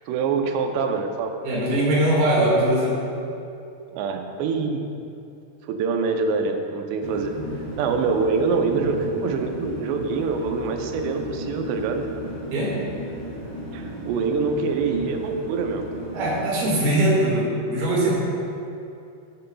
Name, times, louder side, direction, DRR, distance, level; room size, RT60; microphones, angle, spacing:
voice 1, 0.1-1.3 3.9-4.9 5.7-7.3 7.8-12.0 13.7-15.9, right 4 dB, 90° right, 5 dB, 2.9 m, -25 dB
voice 2, 1.4-3.0 7.5-7.6 8.7-8.9 12.5-12.8 16.1-18.2, right 1 dB, 65° right, -4 dB, 3.7 m, -21 dB
sound 1, 7.0-16.5, equal, 40° left, 2.0 m, -35 dB
11.5 x 11.0 x 2.3 m, 2.6 s
omnidirectional pair, 4.8 m